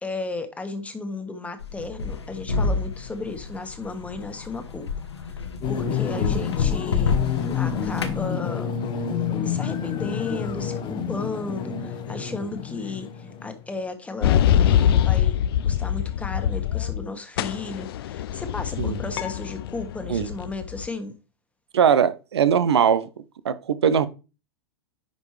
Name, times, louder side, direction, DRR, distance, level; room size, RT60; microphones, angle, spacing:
voice 1, 0.0-4.9 5.1-8.7 9.4-21.1, left 3 dB, 10° left, 1.4 m, -34 dB
sound 1, 1.6-8.2, left 4 dB, 90° left, 1.2 m, -28 dB
sound 2, 5.6-13.7, left 7 dB, 35° left, 1.0 m, -29 dB
sound 3, 14.2-17.1 17.4-20.9, left 10 dB, 65° left, 0.5 m, -23 dB
voice 2, 21.7-23.1 23.4-24.1, right 7 dB, 80° right, 0.7 m, -20 dB
10.5 x 5.2 x 3.2 m
hypercardioid pair, 105°, 14 cm